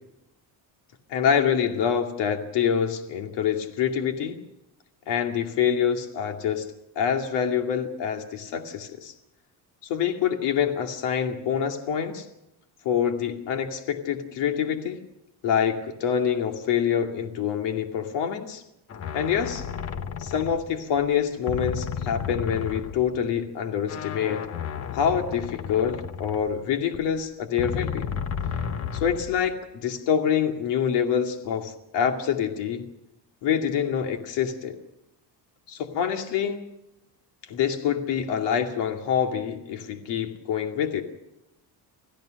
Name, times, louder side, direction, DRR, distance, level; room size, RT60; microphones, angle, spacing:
voice 1, 1.1-4.4 5.1-6.7 7.0-9.1 9.8-12.3 12.8-15.0 15.4-18.6 19.1-19.7 20.2-24.5 24.9-28.1 28.9-32.9 33.4-34.8 35.7-36.7 37.5-41.0, left 8 dB, 90° left, 4 dB, 2.5 m, -26 dB
sound 1, 18.9-21.1 21.5-23.3 23.8-27.1 27.6-29.5, left 7 dB, 35° left, 1.2 m, -33 dB
26.0 x 16.0 x 6.5 m, 0.86 s
cardioid pair, 155°, 41 cm